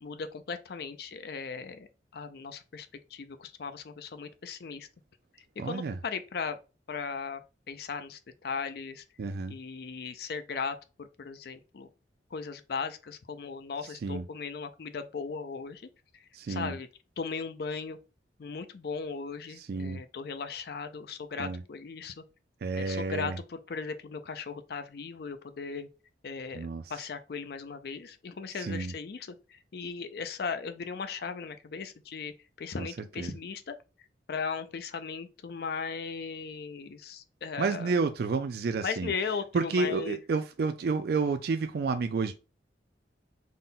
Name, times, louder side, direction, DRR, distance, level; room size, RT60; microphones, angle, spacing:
voice 1, 0.0-4.9 5.6-6.6 6.9-7.4 7.7-9.0 9.5-11.9 12.3-16.9 17.2-18.0 18.4-22.2 22.8-25.9 26.2-33.7 34.3-37.9 38.8-40.2, left 5 dB, 60° left, 0.4 m, -37 dB
voice 2, 5.6-6.0 9.2-9.6 14.0-14.2 16.3-16.7 19.6-20.0 21.4-21.6 22.6-23.4 26.5-26.8 28.6-28.9 32.8-32.9 33.2-33.3 37.6-39.1 39.5-42.3, right 4 dB, 60° right, 0.3 m, -30 dB
3.7 x 2.2 x 3.9 m
head